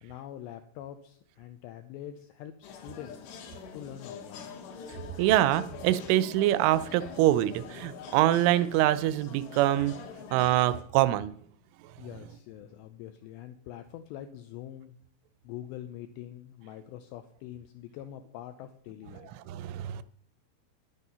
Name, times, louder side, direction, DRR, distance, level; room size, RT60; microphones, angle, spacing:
voice 1, 0.0-3.3 3.7-4.5 12.0-14.9 15.4-19.3, left 11 dB, 85° left, 9 dB, 2.5 m, -44 dB
sound 1, 2.6-10.8, left 6 dB, 70° left, 3.3 m, -45 dB
voice 2, 5.2-10.0 10.3-11.3 19.5-20.0, right 14 dB, 85° right, 15 dB, 3.0 m, -25 dB
11.0 x 10.5 x 5.6 m, 0.63 s
omnidirectional pair, 5.7 m